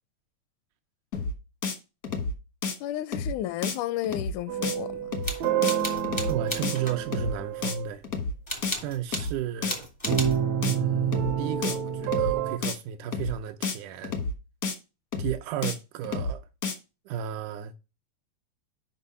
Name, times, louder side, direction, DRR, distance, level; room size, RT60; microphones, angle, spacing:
sound 1, 1.1-1.3 1.6-1.8 2.0-2.3 2.6-2.7 3.1-3.3 3.6-3.8 4.0-4.3 4.6-4.8 5.1-5.3 5.6-5.8 6.0-6.3 6.6-6.8 7.1-7.3 7.6-7.7 8.0-8.3 8.6-8.8 9.1-9.3 9.6-9.8 10.0-10.3 10.6-10.8 11.1-11.3 11.6-11.8 12.0-12.3 12.6-12.8 13.1-13.3 13.6-13.8 14.0-14.3 14.6-14.7 15.1-15.3 15.6-15.8 16.0-16.3 16.6-16.7, left 4 dB, 65° left, 0.8 m, -30 dB
voice 1, 2.8-5.1, left 13 dB, 85° left, 2.0 m, -32 dB
sound 2, 4.5-7.9 10.1-12.6, right 9 dB, 70° right, 1.9 m, -28 dB
sound 3, 5.2-7.0 8.5-9.3 9.7-10.4, left 1 dB, 50° left, 0.3 m, -35 dB
voice 2, 6.3-8.0 8.8-9.9 10.6-14.1 15.2-16.4 17.1-17.7, right 9 dB, 90° right, 2.1 m, -33 dB
6.1 x 5.3 x 5.5 m
omnidirectional pair, 3.5 m